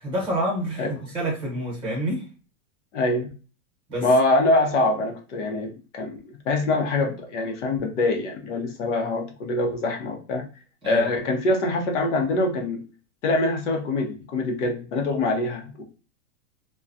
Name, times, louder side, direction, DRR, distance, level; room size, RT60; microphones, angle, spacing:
voice 1, 0.0-2.2 3.9-4.1 10.8-11.1, right 1 dB, 15° right, -3 dB, 1.0 m, -28 dB
voice 2, 2.9-3.3 4.0-6.2 6.5-10.4 10.8-12.8 13.2-15.8, left 2 dB, 65° left, 3 dB, 0.8 m, -24 dB
2.3 x 2.2 x 2.5 m, 0.35 s
supercardioid pair, 160°, 40 cm